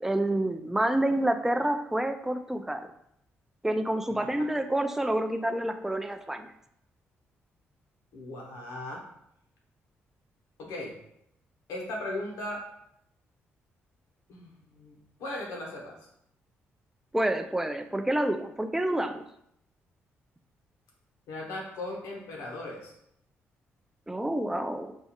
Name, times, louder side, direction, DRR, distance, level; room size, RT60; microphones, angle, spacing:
voice 1, 0.0-2.9 3.6-6.5 17.1-19.2 24.1-25.0, right 1 dB, 5° right, 8 dB, 0.3 m, -28 dB
voice 2, 8.1-9.0 10.6-11.0 11.7-12.6 14.3-16.0 21.3-22.9, left 1 dB, 90° left, -1 dB, 0.9 m, -37 dB
4.2 x 2.3 x 2.8 m, 0.74 s
supercardioid pair, 65°, 5 cm